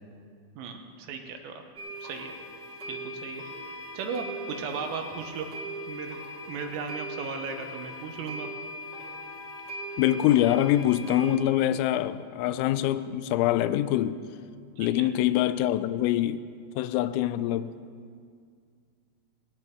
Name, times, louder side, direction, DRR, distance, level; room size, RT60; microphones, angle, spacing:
voice 1, 0.6-1.6 2.0-2.3 2.9-3.4 3.9-5.5 5.9-6.2 6.5-8.5 15.0-15.1, right 5 dB, 80° right, 4 dB, 3.7 m, -36 dB
sound 1, 1.7-11.4, equal, 45° right, 1.4 m, -39 dB
voice 2, 10.0-14.2 14.8-16.5 16.8-17.7, left 13 dB, 90° left, 13 dB, 3.3 m, -24 dB
19.5 x 18.5 x 3.0 m, 2.2 s
omnidirectional pair, 5.9 m